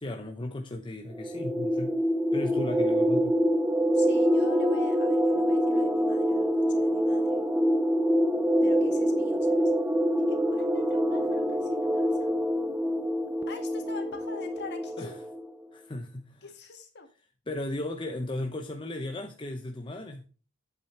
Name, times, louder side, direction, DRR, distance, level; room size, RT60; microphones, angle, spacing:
voice 1, 0.0-2.0 2.3-3.4 15.0-15.1 15.7-16.4 17.5-20.3, left 1 dB, 20° left, 0.7 m, -35 dB
sound 1, 1.1-15.5, equal, 10° right, 0.4 m, -25 dB
voice 2, 3.9-7.4 8.6-9.7 10.2-12.3 13.5-15.2 16.4-17.1, left 3 dB, 50° left, 1.8 m, -44 dB
8.7 x 8.4 x 3.2 m
head